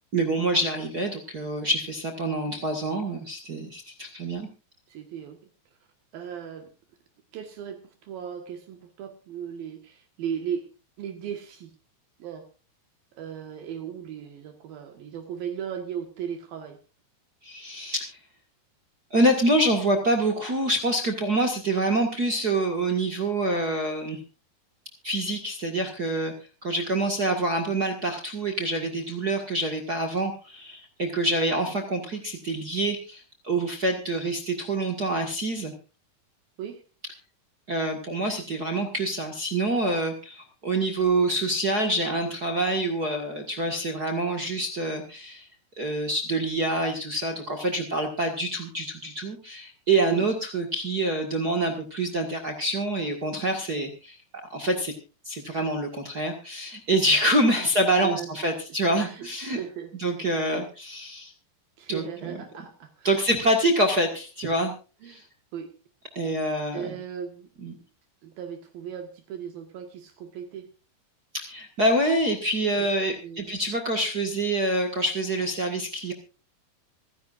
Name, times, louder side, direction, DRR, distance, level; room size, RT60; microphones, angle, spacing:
voice 1, 0.1-4.5 17.4-18.2 19.1-24.2 25.0-26.3 26.6-35.7 37.7-45.5 45.8-54.2 54.5-54.9 55.2-59.6 60.0-61.3 61.9-62.4 63.0-64.7 65.0-65.2 66.1-67.0 67.6-67.7 71.3-76.1, right 1 dB, 45° right, 4 dB, 1.3 m, -26 dB
voice 2, 4.9-5.4 6.1-6.7 7.3-10.7 11.0-11.7 12.2-12.5 13.2-16.8 36.6-36.8 50.1-50.3 57.6-57.7 57.9-58.3 58.9-59.9 60.2-60.3 61.8-63.2 65.0-65.7 66.7-67.5 68.2-70.7 72.7-72.9 73.2-73.5, right 8 dB, 70° right, 5 dB, 3.2 m, -37 dB
25.5 x 10.5 x 2.5 m, 0.34 s
omnidirectional pair, 4.6 m